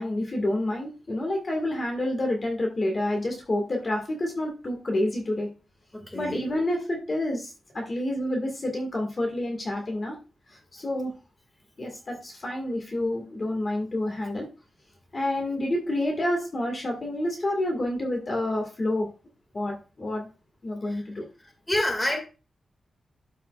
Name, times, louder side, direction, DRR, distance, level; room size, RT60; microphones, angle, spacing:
voice 1, 0.0-5.5 6.1-10.2 10.5-11.1 11.8-14.5 15.1-19.1 19.5-20.3 20.6-21.2, left 1 dB, 30° left, 1.9 m, -28 dB
voice 2, 5.9-6.4 20.9-21.0 21.4-22.2, left 1 dB, 15° left, 2.1 m, -28 dB
12.5 x 5.6 x 2.4 m
wide cardioid pair, 155°, 0 cm